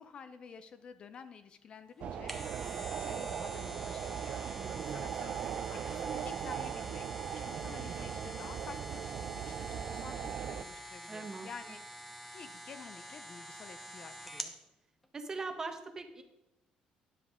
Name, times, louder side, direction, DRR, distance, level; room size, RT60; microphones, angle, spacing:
voice 1, 0.0-2.3 2.6-4.4 4.8-5.4 5.7-7.0 7.4-11.8 12.3-14.5, left 5 dB, 40° left, 12 dB, 0.6 m, -50 dB
sound 1, 2.0-14.6 15.0-15.1, equal, 5° left, 1.0 m, -46 dB
sound 2, 2.0-10.6, right 8 dB, 55° right, 0.5 m, -39 dB
voice 2, 4.6-5.0 11.1-11.5 15.1-16.2, right 3 dB, 25° right, 6 dB, 1.2 m, -41 dB
12.0 x 10.0 x 3.7 m, 0.88 s
cardioid pair, 150°, 3 cm